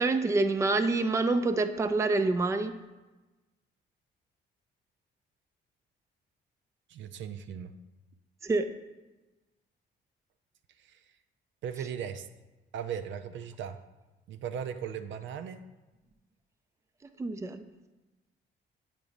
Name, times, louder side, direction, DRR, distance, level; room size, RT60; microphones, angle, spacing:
voice 1, 0.0-2.8 8.4-8.7 17.2-17.6, right 3 dB, 15° right, 8 dB, 0.4 m, -27 dB
voice 2, 6.9-7.7 10.8-11.0 11.6-12.3 12.7-13.8 14.3-15.6, right 8 dB, 70° right, 9 dB, 0.5 m, -37 dB
8.4 x 3.0 x 5.1 m, 1.1 s
cardioid pair, 90°, 20 cm